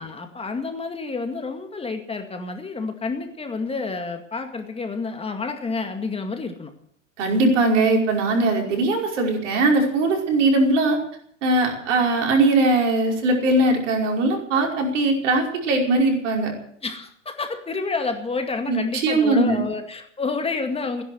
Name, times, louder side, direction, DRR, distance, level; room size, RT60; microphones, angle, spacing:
voice 1, 0.0-6.7 16.8-21.0, left 4 dB, 15° left, 5 dB, 2.1 m, -29 dB
voice 2, 7.2-11.0 11.4-16.5 18.7-19.6, right 2 dB, 75° right, 1 dB, 5.3 m, -20 dB
16.5 x 10.5 x 7.8 m, 0.65 s
hypercardioid pair, 105°, 37 cm